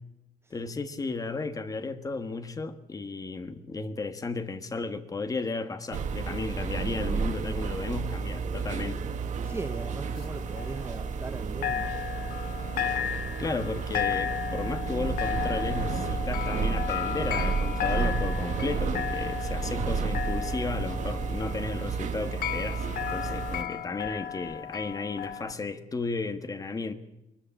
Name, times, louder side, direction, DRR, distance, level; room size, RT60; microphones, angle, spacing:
voice 1, 0.5-9.0 13.4-26.9, left 3 dB, 25° left, 10 dB, 1.4 m, -34 dB
sound 1, 5.9-23.6, right 5 dB, 55° right, 1.4 m, -31 dB
sound 2, 9.4-11.4 11.6-25.5, left 10 dB, 85° left, 1.0 m, -34 dB
voice 2, 9.4-11.9, right 3 dB, 15° right, 10 dB, 0.7 m, -39 dB
23.0 x 13.0 x 8.7 m, 0.95 s
cardioid pair, 155°, 15 cm